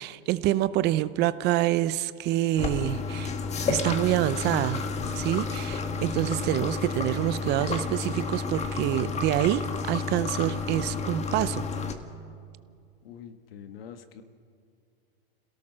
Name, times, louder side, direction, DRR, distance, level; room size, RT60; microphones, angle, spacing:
voice 1, 0.0-3.3 3.7-4.9 5.2-11.6, right 14 dB, 35° right, 16 dB, 0.6 m, -27 dB
sound 1, 2.6-11.9, left 4 dB, 25° left, 1.5 m, -31 dB
voice 2, 13.0-14.2, left 8 dB, 80° left, 8 dB, 1.7 m, -45 dB
27.0 x 17.5 x 6.3 m, 2.3 s
supercardioid pair, 130°, 29 cm